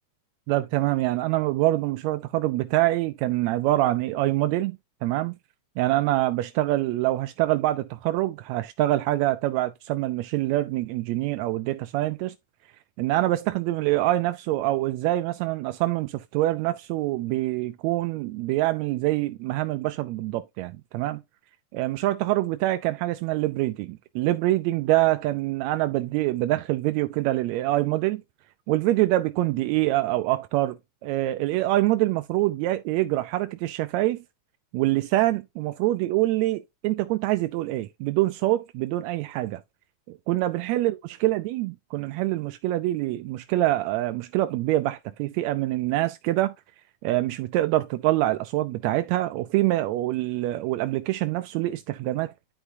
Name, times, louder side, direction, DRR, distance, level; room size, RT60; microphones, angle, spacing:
voice 1, 0.5-4.8 5.0-5.4 5.8-12.3 13.0-21.2 21.7-28.2 28.7-34.2 34.7-39.6 40.1-46.5 47.0-52.3, right 16 dB, 80° right, 1.6 m, -25 dB
11.5 x 4.6 x 2.6 m
omnidirectional pair, 3.6 m